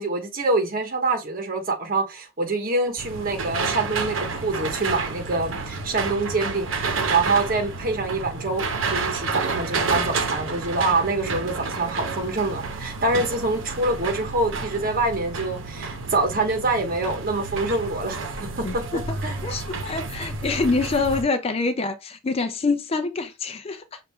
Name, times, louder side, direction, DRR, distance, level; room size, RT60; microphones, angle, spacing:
voice 1, 0.0-18.8 19.2-19.4, right 2 dB, 45° right, 1.0 m, -25 dB
sound 1, 3.0-21.2, right 4 dB, 70° right, 0.8 m, -30 dB
voice 2, 18.6-19.2 19.4-24.0, left 3 dB, 30° left, 0.4 m, -26 dB
5.8 x 2.5 x 3.5 m
head